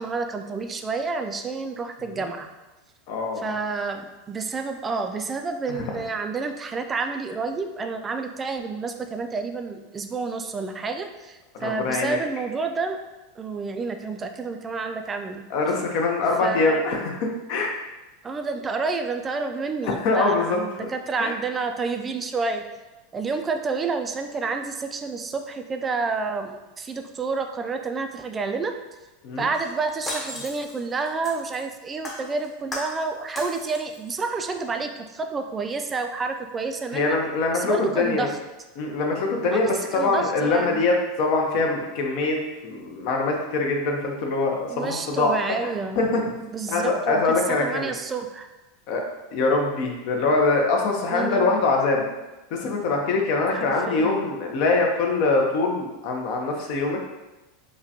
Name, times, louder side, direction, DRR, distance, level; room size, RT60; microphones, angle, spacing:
voice 1, 0.0-2.5 3.4-13.0 13.4-15.4 16.4-16.9 18.2-22.6 23.1-28.7 29.4-37.2 37.5-38.4 39.5-40.9 44.7-46.0 46.4-48.5 51.1-51.5 53.5-54.3, right 4 dB, 20° right, 6 dB, 0.3 m, -29 dB
voice 2, 3.1-3.5 5.7-5.8 11.6-12.2 15.5-17.7 19.8-20.6 21.2-21.3 29.2-29.5 36.9-38.3 38.8-42.4 42.6-45.3 45.6-46.2 46.7-47.9 48.9-49.0 49.3-52.1 52.5-57.0, left 3 dB, 55° left, 1 dB, 0.6 m, -23 dB
Shatter, 29.5-31.7 32.0-33.1 33.4-34.1 34.5-34.6, left 1 dB, 20° left, 0.8 m, -36 dB
4.9 x 2.2 x 2.8 m, 1.1 s
supercardioid pair, 130°, 0 cm